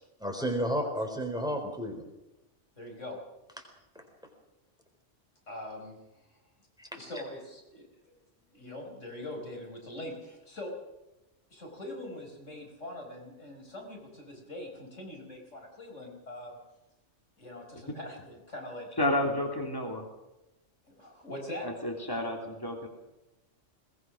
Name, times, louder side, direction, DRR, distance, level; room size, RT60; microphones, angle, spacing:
voice 1, 0.2-2.0 6.8-7.0, equal, 5° right, 3 dB, 4.0 m, -32 dB
voice 2, 2.8-3.2 5.5-6.0 6.9-8.1 8.4-10.8 11.5-16.6 17.4-18.9 20.9-21.7, left 1 dB, 90° left, 1 dB, 5.3 m, -42 dB
voice 3, 19.0-20.0 21.6-22.9, left 1 dB, 20° left, 2 dB, 3.1 m, -30 dB
21.0 x 19.5 x 6.3 m, 0.97 s
omnidirectional pair, 1.2 m